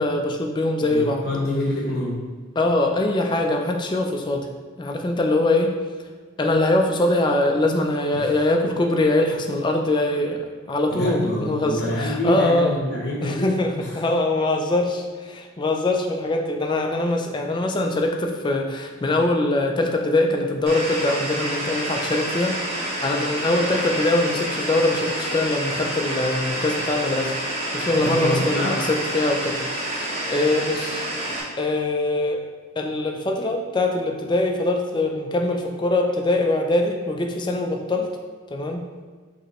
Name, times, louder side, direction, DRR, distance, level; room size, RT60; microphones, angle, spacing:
voice 1, 0.0-1.3 2.6-4.5 4.8-5.7 6.4-12.8 13.2-22.6 23.0-27.3 27.7-31.0 31.6-32.4 32.8-38.1 38.5-38.8, left 2 dB, 25° left, 3 dB, 0.4 m, -23 dB
voice 2, 0.8-2.2 8.1-8.3 10.9-13.9 27.9-28.8, left 1 dB, 55° left, -3 dB, 0.9 m, -26 dB
sound 1, 20.7-31.4, right 1 dB, 30° right, 1.0 m, -28 dB
5.3 x 3.0 x 3.0 m, 1.5 s
head